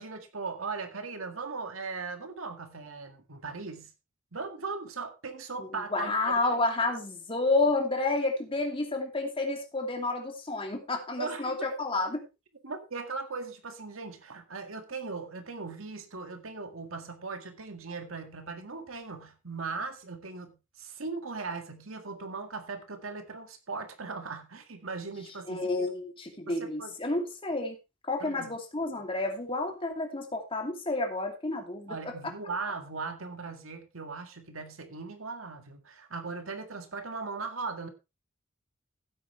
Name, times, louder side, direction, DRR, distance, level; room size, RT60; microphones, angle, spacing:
voice 1, 0.0-3.9 4.3-6.3 11.2-11.6 12.6-25.9 26.5-26.9 28.2-28.6 31.9-37.9, right 4 dB, 90° right, 6 dB, 1.9 m, -38 dB
voice 2, 5.6-12.3 25.5-27.8 28.1-32.1, left 2 dB, 25° left, 3 dB, 2.7 m, -30 dB
15.5 x 8.4 x 3.3 m, 0.27 s
head